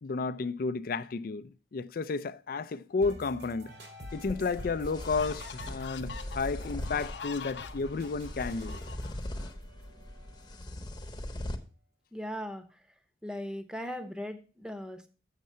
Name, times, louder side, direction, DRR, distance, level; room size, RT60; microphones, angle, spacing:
voice 1, 0.0-3.7 4.1-8.8, left 4 dB, 55° left, 0.4 m, -32 dB
sound 1, 3.0-10.8, equal, 70° right, 2.3 m, -49 dB
sound 2, 3.9-4.0 4.5-9.5, left 6 dB, 85° left, 0.7 m, -46 dB
sound 3, 4.1-11.6, left 1 dB, 25° left, 0.9 m, -40 dB
voice 2, 12.1-12.9 13.2-15.1, equal, 5° right, 0.8 m, -39 dB
7.4 x 6.6 x 5.5 m
head